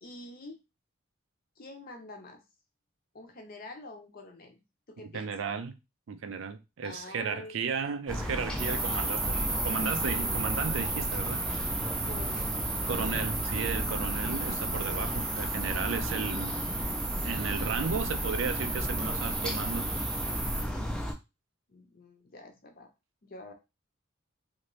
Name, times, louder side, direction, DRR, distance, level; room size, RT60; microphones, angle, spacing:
voice 1, 0.0-0.6 1.6-2.4 3.1-4.6 5.0-5.3 6.8-7.7 12.1-12.6 21.7-22.9 23.2-23.5, left 2 dB, 45° left, 0.6 m, -46 dB
voice 2, 5.1-5.7 6.1-11.5 12.9-16.6 17.2-19.9, right 5 dB, 70° right, 0.4 m, -34 dB
sound 1, 8.1-21.1, equal, 5° left, 0.3 m, -34 dB
sound 2, 8.6-20.6, right 3 dB, 20° right, 0.7 m, -34 dB
2.7 x 2.5 x 3.0 m
head